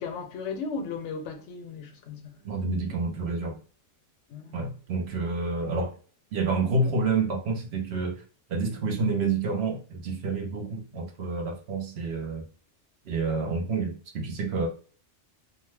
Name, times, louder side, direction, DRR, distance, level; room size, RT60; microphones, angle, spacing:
voice 1, 0.0-2.5 2.8-2.9 4.3-4.6, left 4 dB, 75° left, 0.9 m, -36 dB
voice 2, 2.4-3.6 4.5-5.9 6.3-8.2 8.5-12.5 13.1-14.7, right 3 dB, 65° right, 0.8 m, -28 dB
2.7 x 2.1 x 3.1 m
omnidirectional pair, 1.3 m